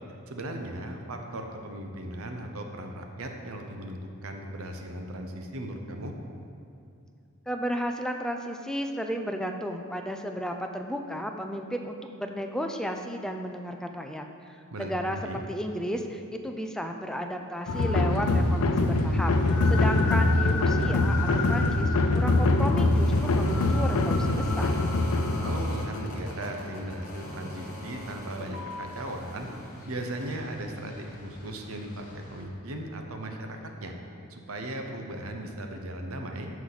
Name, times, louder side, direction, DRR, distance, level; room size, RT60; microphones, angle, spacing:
voice 1, 0.3-6.1 14.7-14.9 15.2-15.4 25.4-29.5 29.9-34.0 34.3-36.5, right 1 dB, 65° right, 3 dB, 0.9 m, -37 dB
voice 2, 7.5-15.2 15.5-24.8, equal, 5° left, 4 dB, 0.4 m, -33 dB
sound 1, 17.6-32.4, left 1 dB, 40° left, 1.3 m, -43 dB
sound 2, 17.7-26.2, left 2 dB, 85° left, 0.6 m, -23 dB
14.0 x 4.8 x 4.1 m, 2.5 s
head